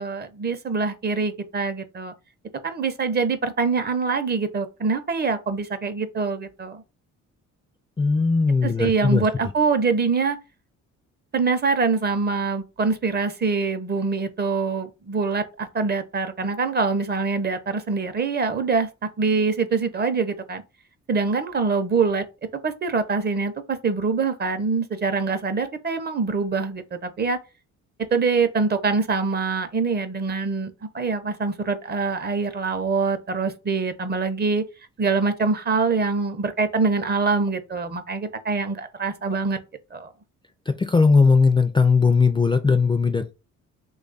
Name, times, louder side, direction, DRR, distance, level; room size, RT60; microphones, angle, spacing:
voice 1, 0.0-2.1 2.6-6.8 8.6-10.4 11.3-18.9 19.2-20.6 21.1-22.2 22.6-27.4 28.1-34.6 35.0-39.6 39.9-40.1, right 4 dB, 35° right, 0.6 m, -24 dB
voice 2, 8.0-9.2 40.7-43.3, left 4 dB, 15° left, 0.3 m, -18 dB
3.1 x 2.3 x 3.9 m
cardioid pair, 90°, 30 cm